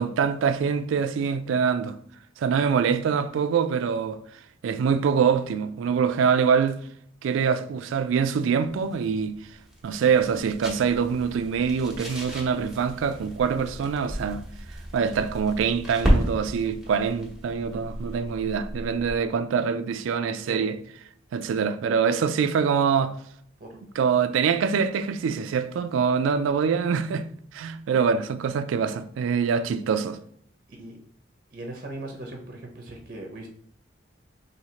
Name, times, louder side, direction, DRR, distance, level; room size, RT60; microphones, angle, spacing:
voice 1, 0.0-2.0 2.4-4.2 4.6-6.8 7.2-9.4 9.8-14.4 14.9-20.8 21.3-23.1 24.0-27.3 27.5-30.2, right 6 dB, 80° right, 0.3 m, -24 dB
sound 1, 8.7-19.3, equal, 5° right, 0.9 m, -32 dB
voice 2, 31.5-33.5, right 1 dB, 50° right, 0.6 m, -38 dB
4.3 x 2.8 x 2.8 m
head